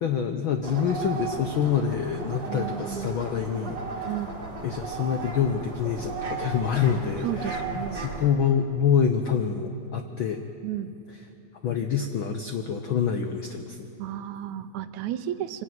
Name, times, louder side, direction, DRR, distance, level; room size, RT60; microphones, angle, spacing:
voice 1, 0.0-4.1 4.6-7.6 7.9-10.4 11.6-13.9, left 7 dB, 80° left, 6 dB, 1.1 m, -26 dB
sound 1, 0.6-8.3, right 4 dB, 35° right, 2.5 m, -35 dB
voice 2, 2.5-3.1 4.1-4.4 7.2-8.1 10.6-11.0 14.0-15.6, right 11 dB, 80° right, 11 dB, 2.1 m, -33 dB
23.5 x 15.5 x 9.2 m, 2.8 s
omnidirectional pair, 3.4 m